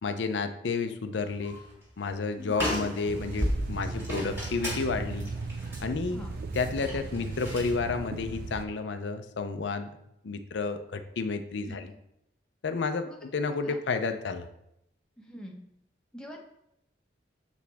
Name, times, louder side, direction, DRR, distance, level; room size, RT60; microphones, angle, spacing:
voice 1, 0.0-1.6 2.0-5.3 5.8-6.2 6.5-9.9 10.2-11.8 12.6-14.5, left 4 dB, 70° left, 8 dB, 0.5 m, -31 dB
sound 1, 1.2-1.7 2.0-2.1 2.5-7.8, equal, 10° right, 1.8 m, -35 dB
sound 2, 3.1-8.7, right 3 dB, 50° right, 0.4 m, -37 dB
voice 2, 15.2-15.5 16.1-16.4, equal, 5° left, 0 dB, 0.8 m, -43 dB
7.0 x 4.8 x 3.4 m, 0.80 s
head